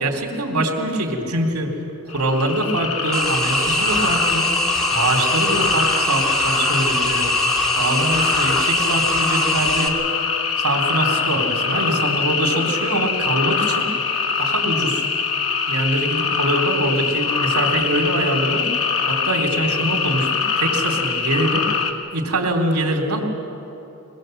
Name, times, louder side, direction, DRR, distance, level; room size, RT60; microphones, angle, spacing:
voice 1, 0.0-1.7 2.1-4.5 4.9-10.0 10.6-13.9 14.4-15.1 15.7-21.7 22.1-23.2, right 1 dB, 85° right, 1 dB, 3.2 m, -23 dB
sound 1, 2.1-21.9, left 5 dB, 65° left, 1.6 m, -23 dB
sound 2, 3.1-9.9, right 1 dB, ahead, 2.2 m, -23 dB
22.5 x 20.0 x 7.8 m, 3.0 s
head